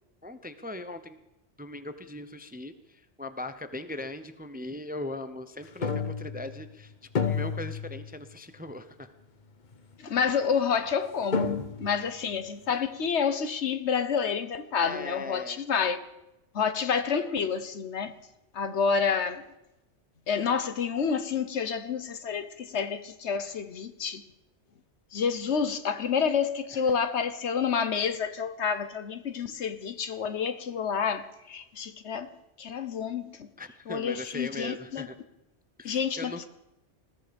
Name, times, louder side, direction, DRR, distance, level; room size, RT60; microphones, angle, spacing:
voice 1, 0.2-1.2 1.6-6.9 7.2-9.1 14.8-15.6 26.7-26.8 33.6-35.2 35.8-36.4, left 1 dB, 10° right, 0.6 m, -39 dB
sound 1, 5.8-6.7 7.1-8.3 8.7-8.8 9.7-9.8 10.9-11.0 11.3-12.1, left 6 dB, 45° left, 0.9 m, -30 dB
voice 2, 10.0-16.0 16.5-18.2 18.5-19.4 20.3-24.2 25.1-32.3 32.6-33.5 33.9-35.1 35.8-36.3, left 6 dB, 70° left, 1.3 m, -29 dB
20.5 x 14.0 x 5.2 m
omnidirectional pair, 1.2 m